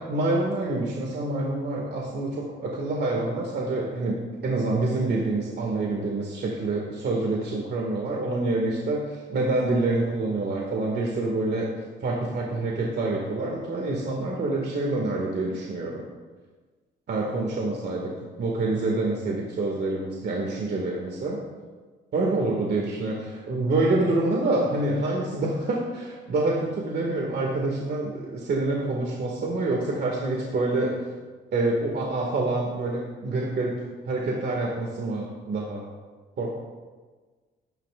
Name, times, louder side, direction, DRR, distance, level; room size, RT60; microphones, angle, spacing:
voice 1, 0.0-4.2 4.4-11.7 12.0-16.0 17.1-18.1 18.4-21.4 22.1-31.0 31.5-33.7 34.1-35.9 36.4-36.5, right 2 dB, 55° right, -1 dB, 2.1 m, -27 dB
19.5 x 10.5 x 2.5 m, 1.4 s
cardioid pair, 90°, 20 cm